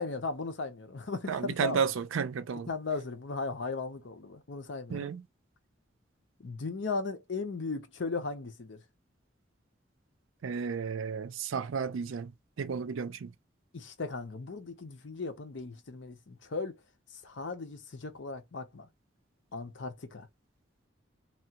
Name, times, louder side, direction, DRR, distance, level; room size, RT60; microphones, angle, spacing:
voice 1, 0.0-1.8 2.7-5.1 6.4-8.8 13.7-16.8 17.2-18.9 19.5-20.3, left 4 dB, 70° left, 0.7 m, -37 dB
voice 2, 1.3-2.7 4.9-5.2 10.4-13.3, right 6 dB, 85° right, 0.4 m, -32 dB
3.0 x 2.3 x 2.8 m
head